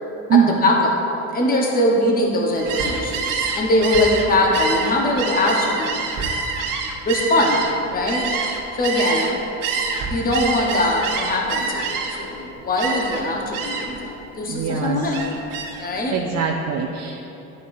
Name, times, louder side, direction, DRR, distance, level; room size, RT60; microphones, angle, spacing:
voice 1, 0.3-0.9 1.2-6.1 7.1-8.3 8.7-9.4 10.1-15.2 15.8-16.2, left 1 dB, 25° left, -1 dB, 1.0 m, -21 dB
Gull seagull, 2.5-9.3 9.6-12.3 12.8-13.2 13.5-14.0 14.4-15.9, right 4 dB, 65° right, 1.2 m, -26 dB
voice 2, 14.5-15.1 16.1-17.2, right 7 dB, 45° right, 1 dB, 0.6 m, -21 dB
11.0 x 5.3 x 2.6 m, 2.9 s
supercardioid pair, 95°, 35 cm